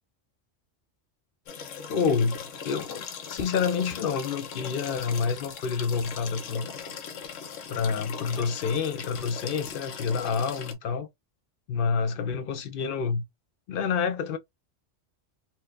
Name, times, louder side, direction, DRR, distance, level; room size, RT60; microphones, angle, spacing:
sound 1, 1.5-10.7, left 6 dB, 75° left, 1.1 m, -39 dB
voice 1, 1.9-6.8 7.7-11.1 11.7-13.2 13.7-14.4, left 5 dB, 60° left, 0.6 m, -28 dB
4.4 x 2.1 x 2.3 m
omnidirectional pair, 1.3 m